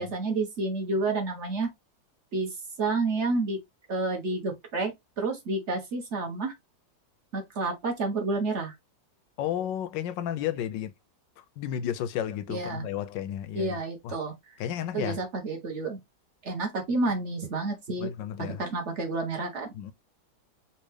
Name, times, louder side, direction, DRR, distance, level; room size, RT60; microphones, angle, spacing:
voice 1, 0.0-1.7 2.3-2.5 2.8-3.6 3.9-4.9 5.2-6.5 7.3-8.7 12.5-12.8 13.5-14.3 14.9-16.0 16.4-18.1 18.6-19.7, right 3 dB, 45° right, 1.3 m, -29 dB
voice 2, 9.4-10.9 11.4-14.2 14.6-15.2 18.0-18.6 19.7-19.9, left 10 dB, 80° left, 1.3 m, -33 dB
4.3 x 2.4 x 3.2 m
omnidirectional pair, 1.9 m